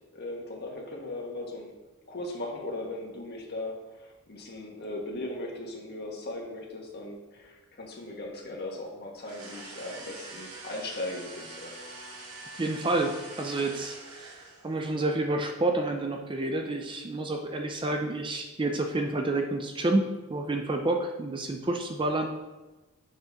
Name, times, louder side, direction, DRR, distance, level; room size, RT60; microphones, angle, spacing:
voice 1, 0.1-1.7 2.1-11.8, left 2 dB, 50° left, 0 dB, 1.3 m, -38 dB
sound 1, 9.2-14.8, right 2 dB, 85° right, 1.4 m, -45 dB
voice 2, 12.6-22.3, right 2 dB, 20° right, 4 dB, 0.5 m, -29 dB
6.4 x 5.4 x 3.5 m, 1.1 s
head